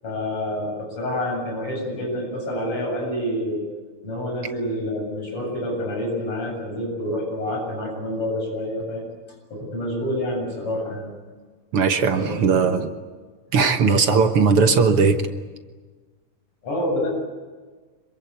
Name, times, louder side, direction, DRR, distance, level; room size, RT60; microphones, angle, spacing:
voice 1, 0.0-3.6 4.0-9.1 9.5-11.1 12.0-12.8 16.6-17.1, left 1 dB, 45° left, 0 dB, 8.7 m, -28 dB
voice 2, 11.7-12.9 13.5-15.2, right 5 dB, 55° right, 7 dB, 1.8 m, -18 dB
26.5 x 23.0 x 8.4 m, 1.4 s
omnidirectional pair, 3.6 m